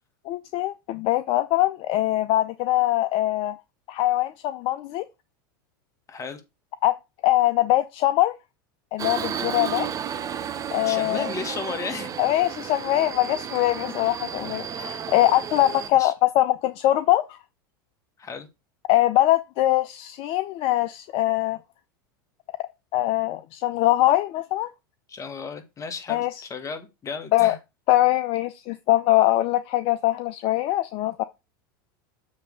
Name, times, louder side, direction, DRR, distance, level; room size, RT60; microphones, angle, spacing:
voice 1, 0.3-3.6 3.9-5.0 6.8-7.0 7.2-8.3 8.9-9.9 10.7-11.3 12.2-17.4 18.9-21.6 22.6-24.7 26.1-26.4 27.3-27.5 27.9-31.2, left 15 dB, 50° left, 0.5 m, -22 dB
voice 2, 6.1-6.4 10.8-12.1 15.9-16.1 18.2-18.5 25.1-27.6, left 5 dB, 25° left, 1.6 m, -34 dB
Subway metro underground, 9.0-15.9, right 8 dB, 30° right, 0.9 m, -33 dB
7.4 x 3.4 x 6.3 m
hypercardioid pair, 105°, 12 cm